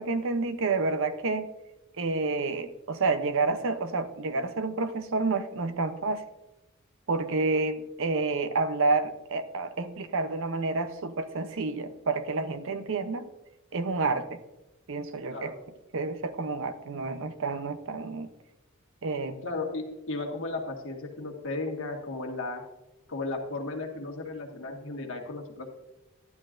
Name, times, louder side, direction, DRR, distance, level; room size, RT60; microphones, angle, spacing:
voice 1, 0.0-1.5 2.0-6.2 7.1-13.2 13.7-14.4 14.9-15.5 15.9-18.3 19.0-19.4, right 3 dB, 65° right, 11 dB, 0.7 m, -29 dB
voice 2, 15.3-15.7 19.4-22.6 23.1-25.7, left 3 dB, 65° left, 2 dB, 1.7 m, -35 dB
12.0 x 11.0 x 2.5 m, 1.0 s
head